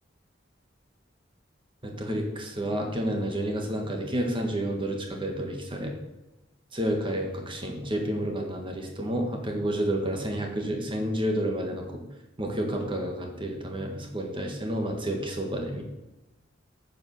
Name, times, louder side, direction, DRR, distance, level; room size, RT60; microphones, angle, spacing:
voice 1, 1.8-5.9 6.7-12.0 12.4-15.8, right 1 dB, 25° right, 2 dB, 1.6 m, -30 dB
9.7 x 5.3 x 6.9 m, 1.0 s
head